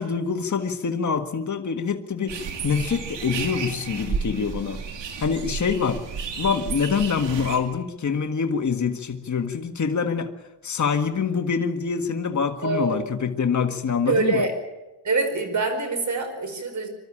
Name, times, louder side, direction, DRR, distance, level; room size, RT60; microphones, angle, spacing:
voice 1, 0.0-4.8 5.2-6.0 6.4-10.3 10.6-14.5, left 6 dB, 45° left, 5 dB, 1.7 m, -25 dB
sound 1, 2.3-7.6, right 6 dB, 85° right, 2.7 m, -32 dB
voice 2, 12.6-13.0 14.1-14.5 15.0-16.9, right 3 dB, 40° right, 6 dB, 5.0 m, -24 dB
25.0 x 13.0 x 8.8 m, 1.1 s
cardioid pair, 90°, 42 cm